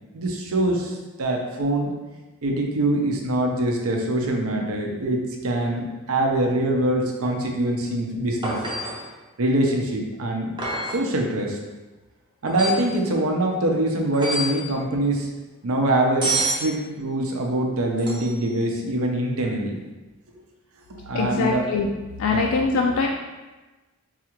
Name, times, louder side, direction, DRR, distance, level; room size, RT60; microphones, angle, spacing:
voice 1, 0.1-1.9 2.4-8.6 9.4-10.5 10.9-11.6 12.4-15.3 15.6-19.7 20.3-20.4 21.1-21.7 22.3-22.5, right 1 dB, 80° right, 1 dB, 0.6 m, -24 dB
sound 1, 8.4-9.1 10.6-11.1 12.5-12.9 14.1-14.6 16.2-16.7 18.0-18.5 21.3-21.4, right 2 dB, 20° right, 0.5 m, -27 dB
voice 2, 21.1-21.9 22.2-23.1, left 4 dB, 75° left, 1 dB, 0.3 m, -22 dB
4.0 x 2.4 x 3.0 m, 1.2 s
head